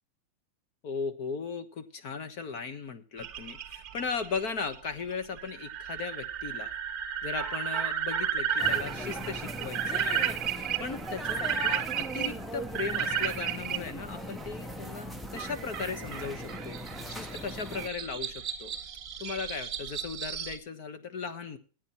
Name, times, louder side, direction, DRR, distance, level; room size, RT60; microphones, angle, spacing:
voice 1, 0.8-6.7 7.2-16.8 17.1-18.7 19.2-21.6, left 5 dB, 40° left, 10 dB, 1.2 m, -37 dB
sound 1, 3.2-13.8 15.4-20.6, right 8 dB, 20° right, 1.3 m, -33 dB
sound 2, 8.6-17.9, equal, ahead, 0.6 m, -40 dB
13.5 x 9.2 x 4.3 m, 0.38 s
supercardioid pair, 170°, 0 cm